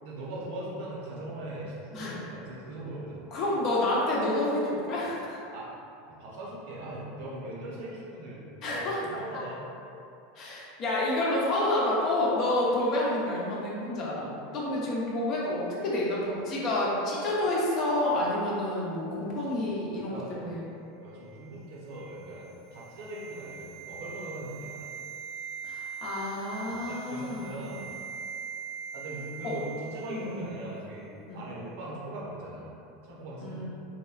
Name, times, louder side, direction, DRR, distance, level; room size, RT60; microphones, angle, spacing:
voice 1, 0.0-3.2 5.5-5.7 6.1-9.6 14.2-14.3 19.9-20.4 21.0-24.9 26.5-27.8 28.9-31.1 31.3-33.6, right 1 dB, 65° right, -6 dB, 0.8 m, -40 dB
voice 2, 3.3-5.4 8.6-9.0 10.3-14.2 14.5-20.6 25.6-27.7 29.4-29.5 30.1-30.4 31.3-31.4 33.4-33.6, left 1 dB, 45° left, -5 dB, 0.8 m, -29 dB
sound 1, 21.3-30.5 30.8-30.9, right 6 dB, 20° right, 0.3 m, -42 dB
3.0 x 2.9 x 2.4 m, 2.7 s
figure-of-eight pair, 80°, 0 cm